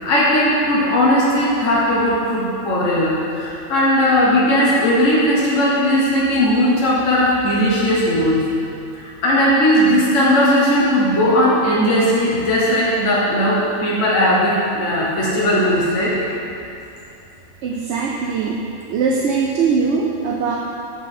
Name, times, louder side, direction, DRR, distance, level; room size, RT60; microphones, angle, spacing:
voice 1, 0.0-8.4 8.9-16.1, equal, 65° left, -5 dB, 1.5 m, -17 dB
voice 2, 17.6-18.6 18.9-20.6, right 5 dB, 65° right, -1 dB, 0.9 m, -20 dB
8.4 x 6.9 x 4.3 m, 2.7 s
omnidirectional pair, 1.4 m